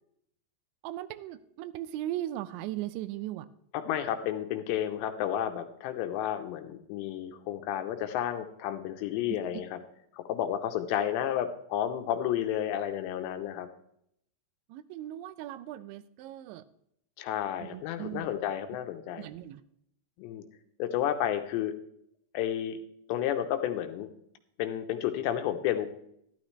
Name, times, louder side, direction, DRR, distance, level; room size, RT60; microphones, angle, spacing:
voice 1, 0.8-3.5 9.3-9.4 14.7-16.6 17.6-18.3 19.2-19.6, right 13 dB, 85° right, 14 dB, 2.9 m, -38 dB
voice 2, 3.7-9.8 10.1-13.7 17.2-19.3 20.2-20.4 20.8-21.7 22.3-22.8 23.1-24.1 24.6-25.9, left 10 dB, 80° left, 8 dB, 2.8 m, -31 dB
12.5 x 12.0 x 3.1 m, 0.71 s
omnidirectional pair, 5.2 m